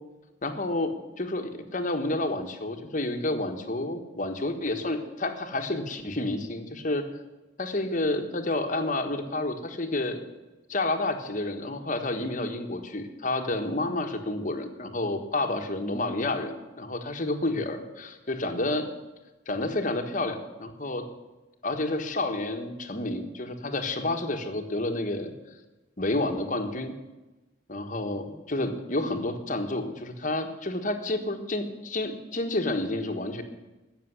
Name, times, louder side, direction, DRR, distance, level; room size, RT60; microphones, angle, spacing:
voice 1, 0.4-7.1 7.6-10.2 10.7-18.9 19.5-21.0 21.6-25.3 26.0-26.9 27.7-33.4, left 2 dB, 40° left, 6 dB, 1.4 m, -30 dB
16.0 x 6.8 x 9.8 m, 1.1 s
head